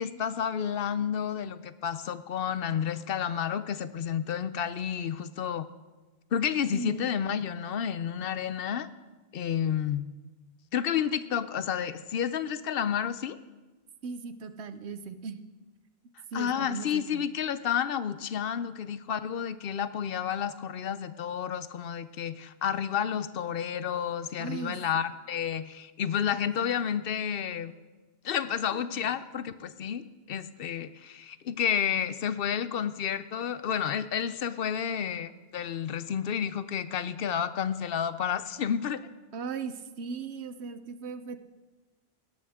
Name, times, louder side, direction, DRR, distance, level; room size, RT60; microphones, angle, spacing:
voice 1, 0.0-5.7 6.3-8.9 9.3-10.1 10.7-13.4 16.3-27.7 28.2-39.0, left 8 dB, 65° left, 14 dB, 0.8 m, -30 dB
voice 2, 6.7-7.1 14.0-15.4 16.3-17.2 24.4-25.0 28.7-29.1 39.3-41.4, right 5 dB, 85° right, 11 dB, 1.1 m, -38 dB
17.0 x 12.5 x 3.6 m, 1.2 s
omnidirectional pair, 1.1 m